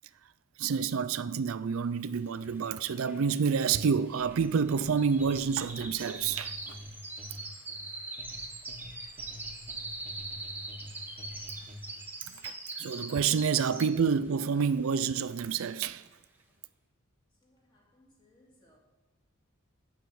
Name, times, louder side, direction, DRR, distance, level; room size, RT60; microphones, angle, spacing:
voice 1, 0.6-6.8 12.3-16.1, right 6 dB, 75° right, 0.4 m, -28 dB
sound 1, 2.4-2.5 2.7-14.2 14.6-14.9 15.3-15.4, right 2 dB, 10° right, 1.1 m, -42 dB
sound 2, 4.2-12.1, equal, 30° right, 1.3 m, -48 dB
voice 2, 17.4-18.8, left 1 dB, 20° left, 2.3 m, -65 dB
12.5 x 4.9 x 8.5 m
head